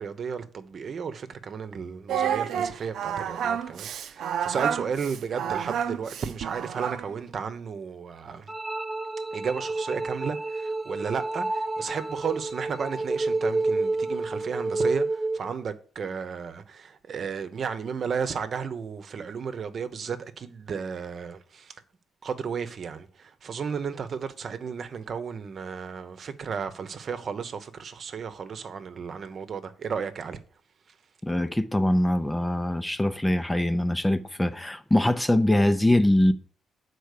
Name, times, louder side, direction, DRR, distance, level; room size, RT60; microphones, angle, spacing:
voice 1, 0.0-8.5 9.3-21.7 22.2-30.4, right 6 dB, 50° right, 1.0 m, -33 dB
Singing, 2.1-7.2, right 8 dB, 70° right, 0.7 m, -29 dB
sound 1, 8.5-15.5, right 2 dB, 15° right, 0.8 m, -29 dB
voice 2, 31.2-36.3, left 1 dB, 10° left, 0.7 m, -23 dB
8.1 x 4.4 x 6.7 m
cardioid pair, 90°, 0 cm